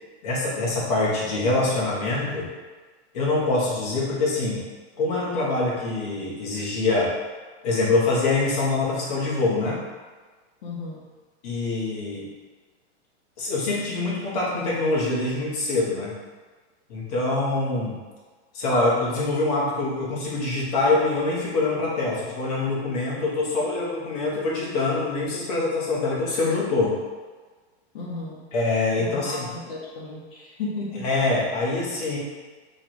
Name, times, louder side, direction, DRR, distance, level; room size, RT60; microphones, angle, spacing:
voice 1, 0.2-2.5 3.1-4.6 5.0-7.1 7.6-9.8 11.4-12.3 13.4-16.1 16.9-17.9 18.5-26.9 28.5-29.5 31.0-32.2, left 2 dB, 35° left, -5 dB, 1.1 m, -24 dB
voice 2, 10.6-11.0 27.9-28.4 28.9-31.0, left 3 dB, 50° left, -5 dB, 1.1 m, -34 dB
4.6 x 2.3 x 4.6 m, 1.4 s
supercardioid pair, 180°, 34 cm